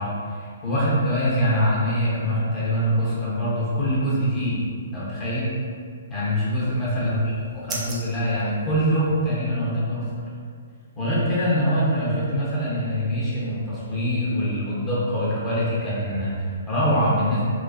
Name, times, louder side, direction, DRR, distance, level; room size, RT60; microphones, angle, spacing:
voice 1, 0.0-4.6 4.9-5.6 6.1-10.1 10.9-17.4, equal, 20° left, -9 dB, 0.8 m, -24 dB
sound 1, 6.6-9.4, right 2 dB, 20° right, 0.5 m, -39 dB
3.1 x 2.0 x 2.5 m, 2.1 s
figure-of-eight pair, 125°, 0 cm